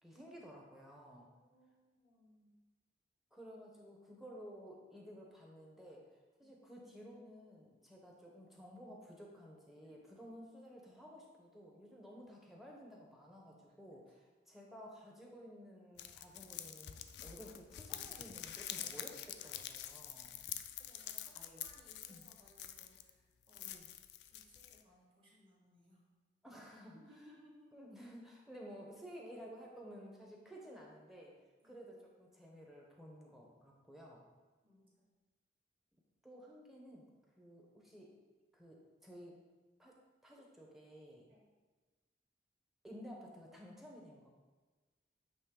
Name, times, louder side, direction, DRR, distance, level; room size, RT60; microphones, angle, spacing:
voice 1, 0.0-1.3 3.3-6.0 6.4-20.3 21.3-21.7 22.1-22.2 23.7-23.9 26.4-27.0 27.7-31.3 31.6-34.2 36.2-37.1 37.4-38.2 38.5-39.4 39.8-40.0 40.2-41.2 42.8-44.3, equal, ahead, -2 dB, 0.8 m, -54 dB
voice 2, 1.3-2.6 6.4-6.6 9.8-10.0 13.9-14.3 20.0-23.7 24.3-26.0 26.9-27.7 31.6-31.7 34.6-35.0 41.3-41.4, equal, 30° right, -4 dB, 1.3 m, -65 dB
sound 1, 16.0-23.1 23.5-24.8, left 11 dB, 70° left, 0.4 m, -47 dB
8.7 x 3.0 x 3.7 m, 1.3 s
head